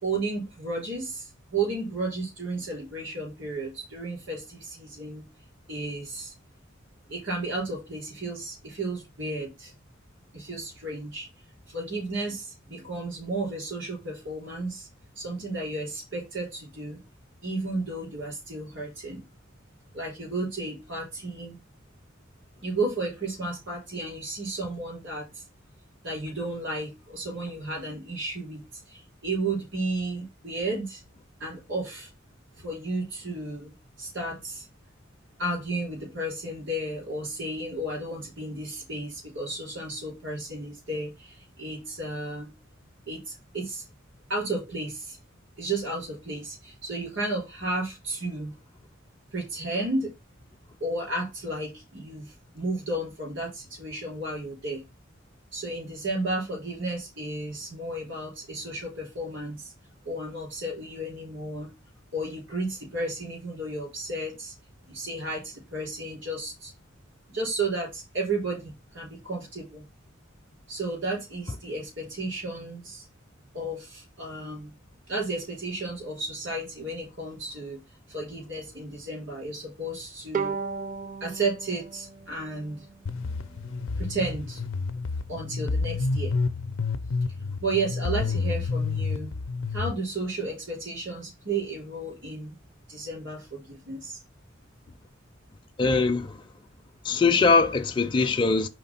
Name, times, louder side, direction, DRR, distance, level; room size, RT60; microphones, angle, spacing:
voice 1, 0.0-5.2 5.7-6.3 7.1-9.7 10.3-11.3 11.7-14.9 15.1-17.0 17.4-19.2 19.9-21.6 22.6-25.4 26.0-31.0 31.4-32.1 32.6-34.6 35.4-42.5 43.1-43.8 44.3-45.2 45.6-48.5 49.3-50.1 50.8-54.8 55.5-59.7 60.0-61.7 62.1-64.5 64.9-66.7 67.3-69.8 70.7-73.0 73.5-74.7 75.1-77.8 78.1-80.6 81.2-82.9 84.0-84.6 85.3-86.3 87.6-89.3 89.7-92.5 92.9-94.2, right 2 dB, 75° right, 3.3 m, -33 dB
Bowed string instrument, 80.3-83.7, right 5 dB, 45° right, 0.5 m, -35 dB
sound 1, 83.1-89.9, left 4 dB, 90° left, 0.5 m, -29 dB
voice 2, 95.8-96.4 97.0-98.7, left 4 dB, 25° left, 0.4 m, -22 dB
4.9 x 3.6 x 5.6 m
head